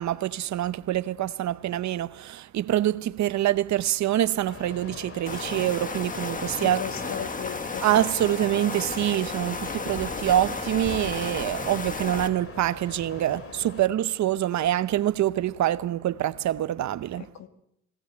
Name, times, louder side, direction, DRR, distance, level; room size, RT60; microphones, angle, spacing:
voice 1, 0.0-6.8 7.8-17.3, right 12 dB, 65° right, 0.8 m, -25 dB
sound 1, 4.5-13.8, left 4 dB, 50° left, 2.5 m, -42 dB
sound 2, 5.3-12.3, left 3 dB, 25° left, 1.4 m, -33 dB
voice 2, 6.5-8.1 17.4-17.5, left 8 dB, 65° left, 2.1 m, -36 dB
21.5 x 18.0 x 7.8 m
cardioid pair, 90°, 30 cm